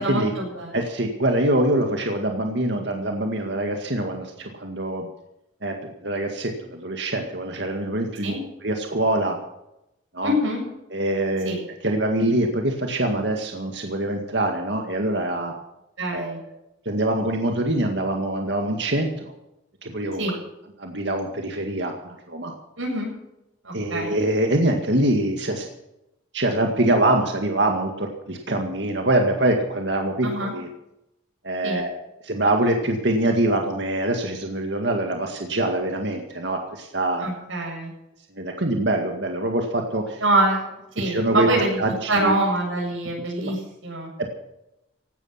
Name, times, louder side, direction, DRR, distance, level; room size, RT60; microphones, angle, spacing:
voice 1, 0.0-0.7 8.2-8.4 10.2-10.6 11.4-11.6 16.0-16.4 20.2-20.4 22.8-23.1 23.6-24.2 30.2-30.5 31.6-31.8 37.2-37.9 40.2-40.6 40.9-41.8 42.1-44.1, right 1 dB, 85° right, -1 dB, 7.7 m, -24 dB
voice 2, 0.7-5.1 5.6-5.7 6.0-8.3 8.6-9.4 10.1-10.3 10.9-11.6 11.8-15.5 16.1-16.4 16.9-19.3 19.8-20.2 20.8-22.5 23.7-25.7 26.3-30.7 31.4-31.9 32.2-37.3 38.3-40.2 41.0-41.5 41.8-42.4 43.4-43.5 44.2-44.3, right 1 dB, 60° right, 3 dB, 2.0 m, -24 dB
17.0 x 12.0 x 5.8 m, 0.86 s
head